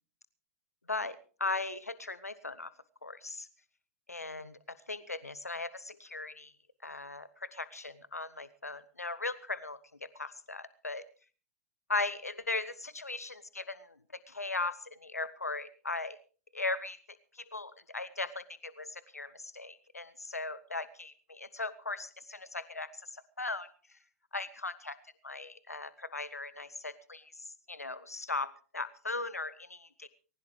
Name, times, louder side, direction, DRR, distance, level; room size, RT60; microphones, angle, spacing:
voice 1, 0.9-2.7 3.0-3.5 4.1-4.6 4.9-6.5 6.8-9.8 10.2-11.0 11.9-13.9 14.3-16.2 16.5-17.0 17.5-23.7 24.3-25.0 25.2-30.1, left 3 dB, 85° left, 17 dB, 0.8 m, -38 dB
20.5 x 19.0 x 3.2 m, 0.38 s
figure-of-eight pair, 100°, 8 cm